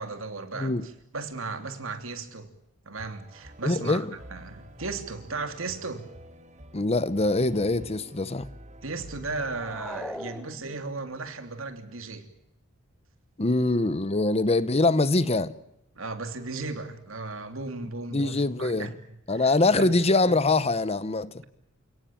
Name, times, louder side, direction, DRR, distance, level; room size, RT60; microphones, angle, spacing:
voice 1, 0.0-2.5 2.8-6.1 8.8-12.3 15.9-18.9 19.3-19.9, right 3 dB, 65° right, 3.1 m, -36 dB
voice 2, 0.5-0.8 3.6-4.1 6.7-8.5 13.4-15.5 18.1-18.9 19.3-21.3, left 2 dB, 30° left, 0.9 m, -23 dB
sound 1, 3.0-10.2, right 1 dB, 35° right, 2.2 m, -48 dB
sound 2, 9.5-11.1, left 1 dB, 5° left, 0.9 m, -39 dB
29.0 x 18.0 x 8.8 m
head